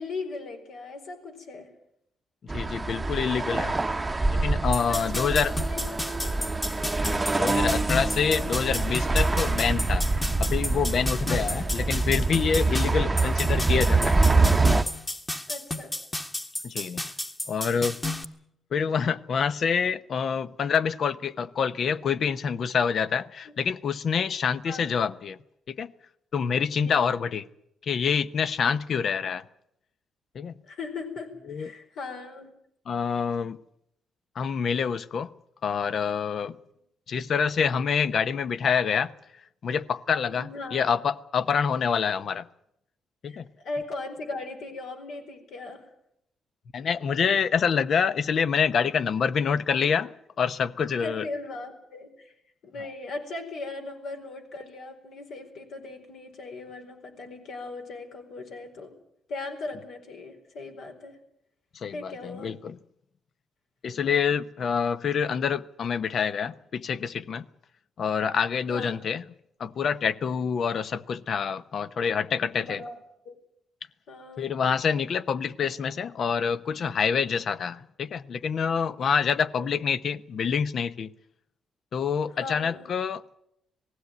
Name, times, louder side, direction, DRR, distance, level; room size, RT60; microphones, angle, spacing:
voice 1, 0.0-1.7 4.9-6.1 8.3-8.5 11.3-11.7 15.5-15.9 23.4-23.5 24.6-24.9 26.9-27.1 28.9-29.0 30.7-32.5 40.3-41.0 43.2-45.9 51.0-52.3 52.6-58.9 59.3-61.2 61.9-62.5 68.7-69.1 72.6-73.0 73.2-73.3 74.1-74.5 79.6-79.8 82.3-82.9, left 3 dB, 75° left, 4 dB, 4.5 m, -38 dB
voice 2, 2.5-3.7 4.4-5.5 7.0-10.0 10.4-14.2 16.6-17.0 17.5-18.0 18.7-25.4 25.7-25.9 26.3-27.5 27.9-29.4 30.3-30.5 31.5-31.7 32.9-33.6 34.4-35.3 35.6-36.5 37.1-39.1 39.6-42.5 43.2-43.4 46.7-50.1 50.4-51.3 61.8-62.8 63.8-67.4 68.0-69.2 69.6-72.8 74.4-81.1 81.9-83.4, left 6 dB, 55° left, 14 dB, 0.9 m, -26 dB
sound 1, 2.5-14.8, right 3 dB, 20° right, 0.9 m, -25 dB
sound 2, 4.7-18.2, left 1 dB, 15° left, 1.5 m, -33 dB
19.5 x 16.0 x 9.4 m, 0.77 s
cardioid pair, 90°, 0 cm